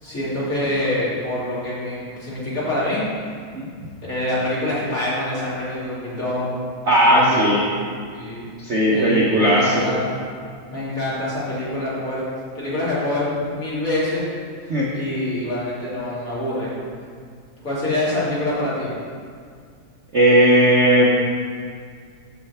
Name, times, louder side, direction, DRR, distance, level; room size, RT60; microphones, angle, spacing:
voice 1, 0.0-3.1 4.0-6.5 7.0-7.4 8.1-8.4 8.9-10.1 10.7-12.2 12.5-14.3 14.9-16.7 17.6-18.9, left 1 dB, 45° left, -9 dB, 2.8 m, -25 dB
voice 2, 6.8-7.6 8.6-9.9 14.7-14.9 20.1-21.1, right 1 dB, 50° right, -5 dB, 0.9 m, -16 dB
7.8 x 4.5 x 6.9 m, 2.1 s
omnidirectional pair, 2.2 m